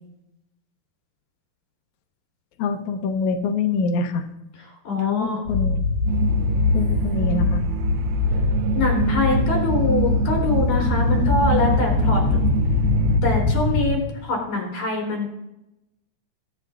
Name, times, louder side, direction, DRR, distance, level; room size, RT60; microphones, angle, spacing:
voice 1, 2.6-4.3 5.0-5.8 6.7-7.6, left 4 dB, 80° left, 4 dB, 1.7 m, -25 dB
voice 2, 4.9-5.4 8.7-12.2 13.2-15.3, left 3 dB, 60° left, -1 dB, 5.7 m, -24 dB
sound 1, 5.5-13.9, left 3 dB, 35° left, 5.6 m, -22 dB
sound 2, 6.1-13.2, right 12 dB, 80° right, 2.2 m, -28 dB
22.5 x 10.5 x 2.5 m, 0.87 s
omnidirectional pair, 4.7 m